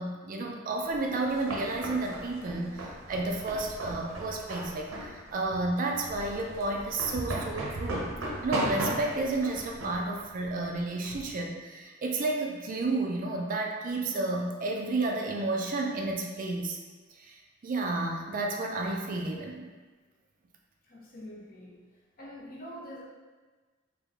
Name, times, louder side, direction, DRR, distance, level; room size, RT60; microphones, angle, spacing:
voice 1, 0.0-8.1 8.4-16.8 17.2-17.3 17.6-19.7, right 2 dB, 40° right, 1 dB, 0.4 m, -31 dB
sound 1, 0.9-11.3, right 1 dB, 90° right, 0.7 m, -37 dB
voice 2, 20.9-21.8 22.2-23.0, equal, 45° left, -4 dB, 0.7 m, -45 dB
3.4 x 2.1 x 3.5 m, 1.3 s
head